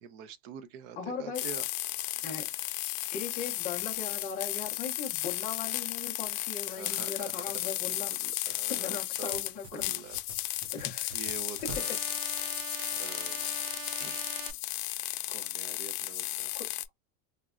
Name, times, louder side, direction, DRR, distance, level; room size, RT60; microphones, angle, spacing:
voice 1, 0.0-1.7 6.7-9.4 9.7-10.2 11.1-12.0 12.9-13.5 14.0-14.3 15.3-16.5, right 8 dB, 40° right, 0.4 m, -46 dB
voice 2, 1.0-1.4 2.2-2.4 3.1-8.1 8.4-10.0 10.7-11.2 16.5-16.7, left 6 dB, 20° left, 0.4 m, -39 dB
sound 1, 1.3-16.9, left 17 dB, 75° left, 0.6 m, -34 dB
sound 2, 9.3-14.5, right 8 dB, 70° right, 0.7 m, -43 dB
3.7 x 2.1 x 2.4 m
supercardioid pair, 165°, 46 cm